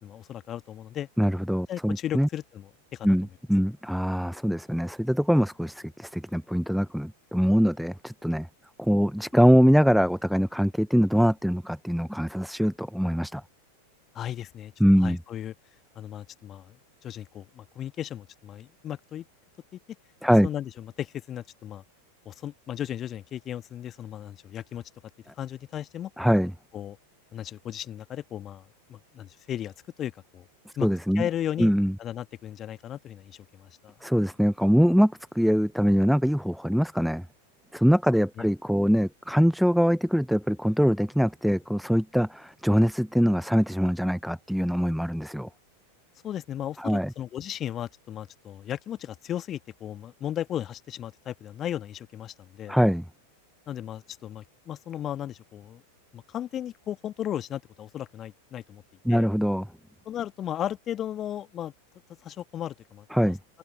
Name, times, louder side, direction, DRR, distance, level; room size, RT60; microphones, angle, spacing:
voice 1, 0.0-1.1 1.7-3.2 14.1-14.7 15.0-15.5 15.9-16.8 17.0-19.2 19.7-19.8 20.4-21.8 22.2-24.8 25.4-26.1 26.7-27.0 27.3-29.7 30.0-30.5 30.8-30.9 31.1-31.7 32.0-33.9 38.4-38.5 46.2-52.8 53.7-55.8 56.1-58.8 59.1-59.3 60.0-61.7 62.2-63.3, left 11 dB, 30° left, 1.4 m, -35 dB
voice 2, 1.2-2.3 3.0-8.5 8.8-13.4 14.8-15.2 20.2-20.5 26.2-26.5 30.7-31.3 31.6-31.9 34.0-37.3 37.7-45.5 46.8-47.1 52.7-53.0 59.0-59.7 63.1-63.4, equal, ahead, 0.6 m, -23 dB
open air
figure-of-eight pair, 90°, 0 cm